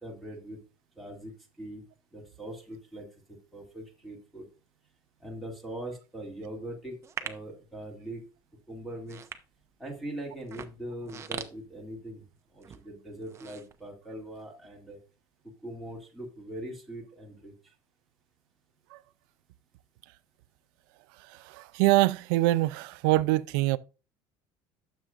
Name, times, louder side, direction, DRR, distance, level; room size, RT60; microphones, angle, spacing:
voice 1, 0.0-0.6 1.0-1.3 1.6-1.8 2.1-3.0 3.5-4.4 5.2-8.2 8.7-9.2 9.8-12.2 12.5-15.0 15.6-17.5, right 1 dB, ahead, 2.5 m, -41 dB
sound 1, 7.0-7.5 8.2-8.4 8.9-9.9 10.4-12.3 12.6-12.8 13.2-14.4 14.7-14.8, right 6 dB, 25° right, 0.8 m, -41 dB
voice 2, 21.2-23.8, right 18 dB, 90° right, 0.5 m, -25 dB
13.0 x 7.3 x 2.5 m
cardioid pair, 135°, 11 cm